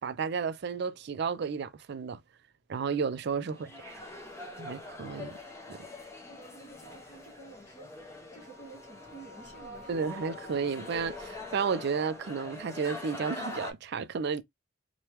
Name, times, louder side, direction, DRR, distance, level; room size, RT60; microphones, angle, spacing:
voice 1, 0.0-2.2 2.7-4.0 4.6-5.4 5.7-5.8 9.9-14.4, right 5 dB, 55° right, 0.4 m, -32 dB
voice 2, 3.4-4.5 6.3-9.9, right 3 dB, 35° left, 1.2 m, -53 dB
sound 1, 3.5-13.7, left 2 dB, 15° left, 0.7 m, -44 dB
sound 2, 8.4-12.8, left 3 dB, 70° left, 0.8 m, -52 dB
3.3 x 2.2 x 2.9 m
head